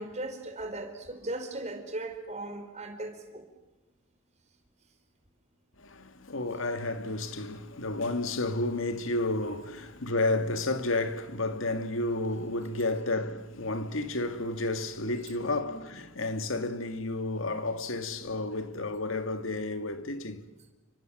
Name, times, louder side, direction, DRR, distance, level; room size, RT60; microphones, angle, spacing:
voice 1, 0.0-3.4, right 2 dB, 35° right, 4.4 m, -37 dB
voice 2, 5.8-20.4, left 2 dB, 70° left, 2.0 m, -31 dB
30.0 x 25.5 x 7.6 m
head